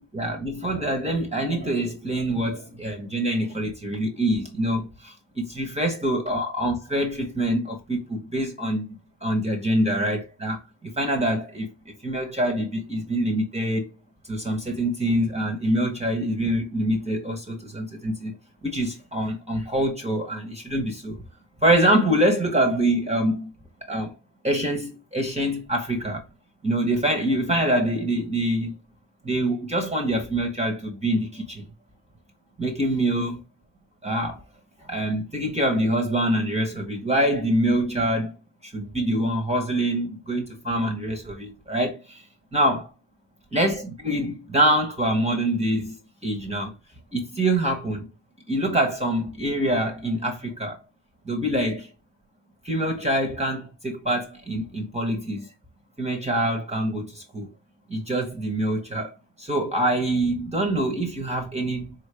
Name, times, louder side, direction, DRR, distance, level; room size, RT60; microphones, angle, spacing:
voice 1, 0.0-8.9 9.2-11.7 12.0-13.9 14.3-18.3 18.6-21.2 21.6-23.5 23.9-24.1 24.4-26.2 26.6-28.8 29.2-31.7 32.6-33.4 34.0-34.4 34.9-38.3 38.6-42.2 42.5-42.9 43.5-46.0 46.2-46.7 47.1-48.1 48.5-50.8 51.3-51.9 52.6-55.5 56.0-57.5 57.9-61.9, right 1 dB, 15° right, 1.0 m, -25 dB
4.2 x 2.8 x 3.3 m
cardioid pair, 80°, 43 cm